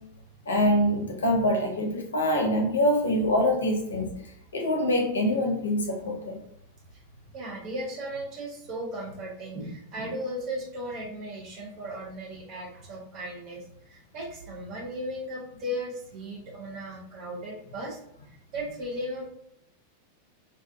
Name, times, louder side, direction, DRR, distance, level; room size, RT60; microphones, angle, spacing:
voice 1, 0.5-4.1 4.5-6.4, left 1 dB, 70° left, 2 dB, 0.6 m, -24 dB
voice 2, 7.3-18.0 18.3-19.3, equal, 35° right, -2 dB, 0.8 m, -36 dB
2.5 x 2.3 x 2.4 m, 0.75 s
figure-of-eight pair, 90°, 0 cm